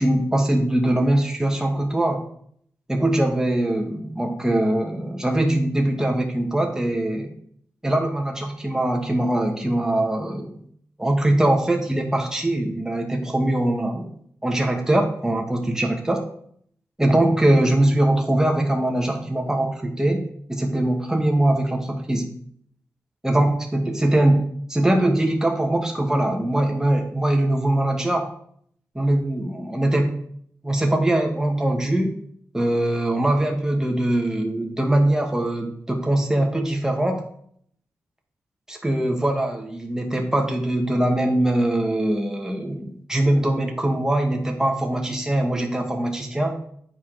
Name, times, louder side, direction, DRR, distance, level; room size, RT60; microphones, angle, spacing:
voice 1, 0.0-2.2 2.9-7.3 7.8-10.6 11.0-14.1 14.4-16.2 17.0-20.2 20.5-22.3 23.2-24.4 24.7-28.3 28.9-30.2 30.6-32.2 32.5-37.2 38.7-46.5, right 1 dB, 10° right, 2 dB, 1.2 m, -22 dB
8.1 x 4.7 x 3.8 m, 0.64 s
cardioid pair, 65°, 6 cm